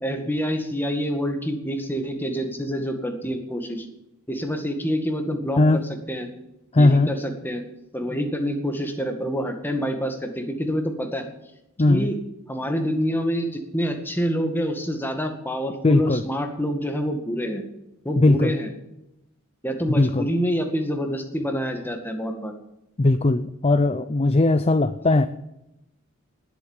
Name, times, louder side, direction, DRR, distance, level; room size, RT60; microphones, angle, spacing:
voice 1, 0.0-3.9 4.3-6.3 6.8-7.6 7.9-11.3 11.9-12.2 12.5-17.6 18.0-18.7 19.6-22.5, equal, 10° left, 4 dB, 2.0 m, -27 dB
voice 2, 6.7-7.1 11.8-12.1 15.8-16.2 18.2-18.5 19.9-20.3 23.0-25.3, left 2 dB, 30° left, 11 dB, 0.5 m, -18 dB
19.5 x 8.3 x 7.3 m, 0.89 s
head